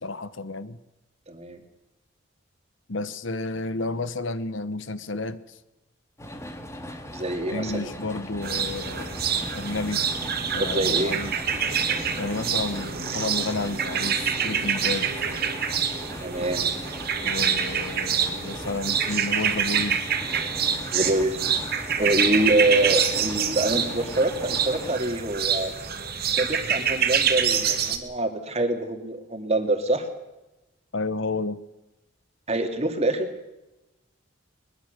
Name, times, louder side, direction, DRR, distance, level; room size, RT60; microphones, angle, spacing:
voice 1, 0.0-0.8 2.9-5.4 7.5-9.2 9.5-10.0 10.5-11.3 12.2-15.1 17.2-20.1 30.9-31.6, left 3 dB, 65° left, 1.1 m, -31 dB
voice 2, 1.3-1.6 7.1-7.9 10.6-11.2 16.2-16.6 20.9-21.4 22.0-25.7 26.4-30.1 32.5-33.3, right 1 dB, 30° right, 2.5 m, -25 dB
sound 1, 6.2-25.0, equal, 15° left, 2.0 m, -38 dB
sound 2, 8.4-28.0, right 7 dB, 50° right, 2.2 m, -26 dB
22.5 x 21.0 x 6.7 m
head